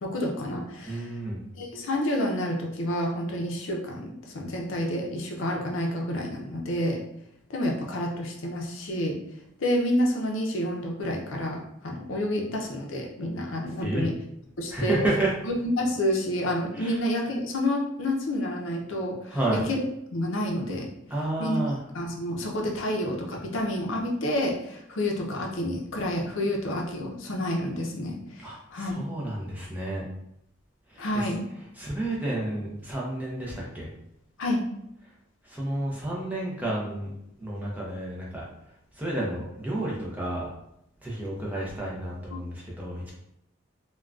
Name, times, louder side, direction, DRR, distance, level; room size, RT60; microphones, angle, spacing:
voice 1, 0.0-1.1 1.6-7.0 7.5-9.2 9.6-14.1 14.6-15.0 15.4-19.8 20.1-20.9 21.4-21.6 21.9-29.0 31.0-31.4 34.4-34.6 42.3-42.4, left 1 dB, 75° left, 0 dB, 0.5 m, -29 dB
voice 2, 0.9-1.4 13.8-14.1 14.7-15.3 16.7-17.0 19.3-19.6 21.1-21.8 28.4-30.0 30.9-31.0 31.8-33.9 35.4-37.1 37.4-38.4 39.0-40.5 41.0-43.1, right 1 dB, 10° right, -5 dB, 0.6 m, -30 dB
3.6 x 2.2 x 2.3 m, 0.78 s
head